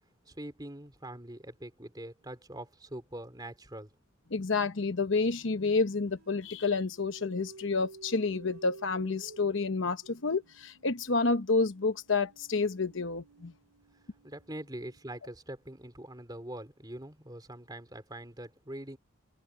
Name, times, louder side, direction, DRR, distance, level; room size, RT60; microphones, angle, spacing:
voice 1, 0.3-3.9 14.2-19.0, right 1 dB, 20° right, 3.5 m, -43 dB
sound 1, 2.2-2.4 4.2-15.3, right 3 dB, 85° right, 3.0 m, -54 dB
voice 2, 4.3-13.5, left 4 dB, 60° left, 1.0 m, -29 dB
head